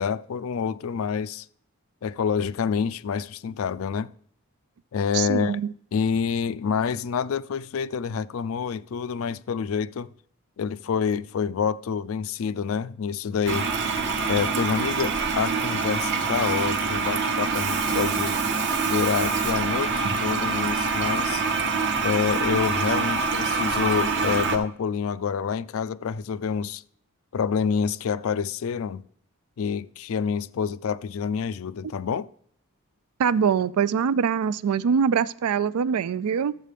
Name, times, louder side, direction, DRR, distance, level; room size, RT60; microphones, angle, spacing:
voice 1, 0.0-1.5 2.0-4.1 4.9-5.6 5.9-10.1 10.6-13.7 14.3-18.4 18.8-21.4 22.0-26.8 27.3-29.0 29.6-32.3, left 6 dB, 65° left, 0.4 m, -27 dB
voice 2, 5.1-5.7 33.2-36.6, right 7 dB, 85° right, 0.4 m, -23 dB
Toilet flush, 13.5-24.6, right 4 dB, 50° right, 0.8 m, -25 dB
12.5 x 7.4 x 3.4 m
head